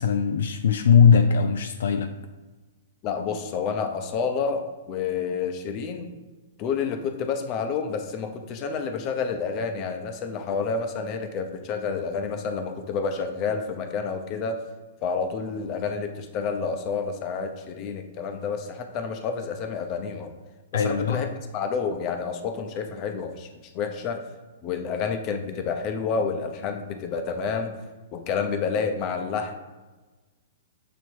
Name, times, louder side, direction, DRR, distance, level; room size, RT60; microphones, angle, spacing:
voice 1, 0.0-2.1 20.7-21.3, left 6 dB, 75° left, 7 dB, 0.4 m, -20 dB
voice 2, 3.0-6.1 6.6-14.6 15.0-20.3 20.7-21.3 21.5-24.2 24.6-27.8 28.1-29.5, left 5 dB, 35° left, 6 dB, 0.8 m, -29 dB
7.1 x 3.0 x 4.6 m, 1.3 s
hypercardioid pair, 130°, 0 cm